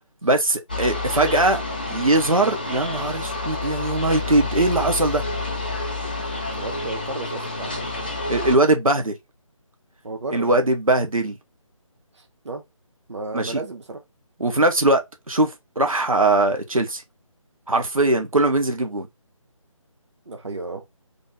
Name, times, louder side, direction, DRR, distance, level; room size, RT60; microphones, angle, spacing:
voice 1, 0.2-1.6 1.9-5.2 8.3-9.1 10.3-11.3 13.3-13.6 14.4-17.0 17.7-19.1, right 2 dB, 80° right, 1.0 m, -21 dB
sound 1, 0.7-8.6, left 2 dB, 15° left, 0.4 m, -29 dB
voice 2, 6.5-7.9 10.0-10.6 12.2-12.6 13.1-14.0 20.3-20.8, right 3 dB, 55° right, 1.0 m, -33 dB
3.5 x 2.7 x 3.5 m
figure-of-eight pair, 155°, 17 cm